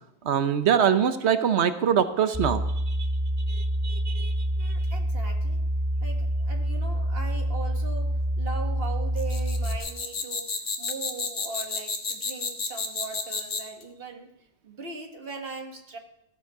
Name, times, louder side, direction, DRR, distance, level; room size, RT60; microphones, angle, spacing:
voice 1, 0.2-3.0 3.5-4.3, right 8 dB, 85° right, 10 dB, 1.1 m, -24 dB
sound 1, 2.3-9.8, right 1 dB, 25° right, 1.6 m, -27 dB
voice 2, 4.6-5.6 6.0-10.5 10.8-14.3 14.6-16.0, right 3 dB, 60° right, 4 dB, 1.8 m, -39 dB
sound 2, 9.2-13.8, left 4 dB, 80° left, 1.6 m, -31 dB
15.0 x 12.5 x 4.7 m, 0.80 s
omnidirectional pair, 1.1 m